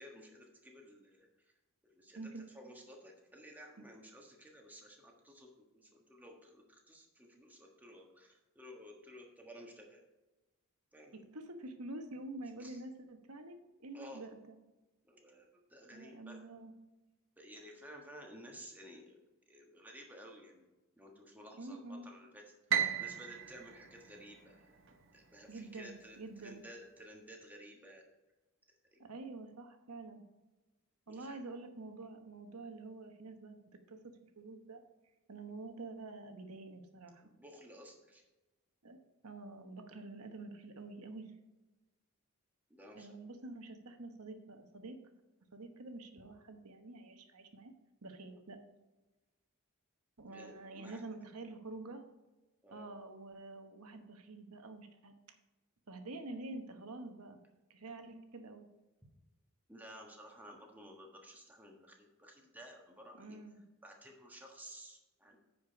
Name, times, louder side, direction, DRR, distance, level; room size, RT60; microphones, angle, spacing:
voice 1, 0.0-1.5 1.8-10.0 10.9-11.2 12.6-12.8 13.9-14.2 15.1-16.4 17.4-20.7 21.0-22.4 23.0-24.8 25.1-28.0 28.9-29.0 31.1-31.5 37.2-38.2 42.7-43.1 48.3-48.4 50.3-51.0 52.6-52.9 59.7-63.4 63.8-65.4, equal, 10° right, 0 dB, 1.4 m, -54 dB
voice 2, 2.1-2.4 11.1-14.6 15.9-16.7 21.6-22.1 25.5-26.6 29.0-30.2 31.1-33.6 33.9-34.8 35.3-37.2 38.8-39.0 39.2-41.3 42.9-45.0 45.5-47.7 48.0-48.6 50.2-52.0 52.7-55.1 55.9-57.4 57.7-58.7 63.2-63.6, right 2 dB, 85° right, 6 dB, 1.1 m, -47 dB
Piano, 22.7-25.0, right 9 dB, 55° right, 0.8 m, -36 dB
9.6 x 5.1 x 5.2 m, 1.1 s
head